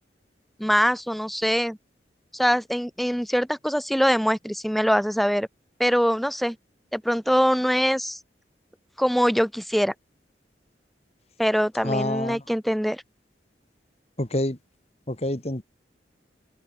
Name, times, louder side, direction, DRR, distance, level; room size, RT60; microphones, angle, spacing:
voice 1, 0.6-1.8 2.3-5.5 5.8-6.6 6.9-8.2 9.0-9.9 11.4-13.0, equal, ahead, 7.8 m, -23 dB
voice 2, 11.8-12.4 14.2-14.6 15.1-15.6, left 1 dB, 35° left, 2.2 m, -27 dB
open air
head